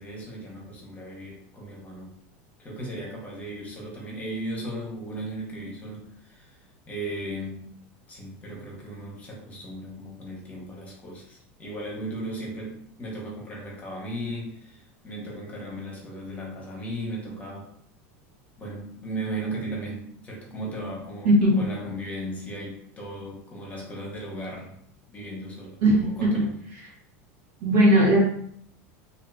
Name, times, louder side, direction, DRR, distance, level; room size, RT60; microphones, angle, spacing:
voice 1, 0.0-2.1 2.6-6.6 6.9-7.8 8.1-17.7 18.6-24.8 25.1-26.6, right 1 dB, 20° left, -2 dB, 0.9 m, -36 dB
voice 2, 21.2-21.7 25.8-26.5 27.6-28.2, right 1 dB, 80° right, -3 dB, 1.2 m, -19 dB
2.8 x 2.7 x 2.2 m, 0.64 s
supercardioid pair, 120°, 7 cm